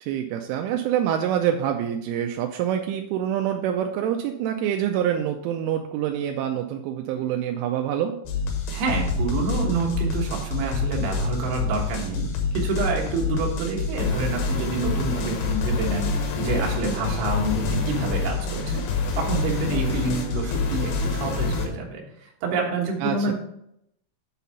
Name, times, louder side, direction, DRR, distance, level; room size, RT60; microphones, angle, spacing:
voice 1, 0.0-8.2 23.0-23.3, right 10 dB, 85° right, 4 dB, 3.0 m, -26 dB
sound 1, 8.3-21.7, left 4 dB, 70° left, 2.5 m, -27 dB
voice 2, 8.7-18.8 19.1-23.3, right 3 dB, 65° right, 0 dB, 3.0 m, -28 dB
8.2 x 4.1 x 5.6 m, 0.77 s
omnidirectional pair, 5.6 m